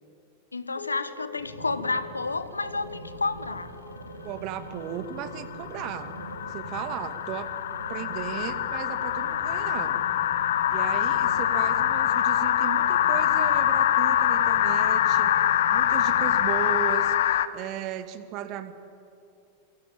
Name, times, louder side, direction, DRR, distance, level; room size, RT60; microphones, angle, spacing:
voice 1, 0.5-3.7, left 3 dB, 80° left, 13 dB, 1.4 m, -30 dB
sound 1, 0.8-2.4 2.7-3.4 5.0-17.5, left 11 dB, 60° left, 1.1 m, -25 dB
sound 2, 1.4-16.6, right 1 dB, 80° right, 3.1 m, -43 dB
voice 2, 4.2-6.1 6.4-7.5 7.9-10.1 10.7-15.3 15.7-18.7, right 10 dB, 40° right, 10 dB, 2.2 m, -36 dB
27.5 x 23.5 x 8.8 m, 2.7 s
figure-of-eight pair, 90°, 0 cm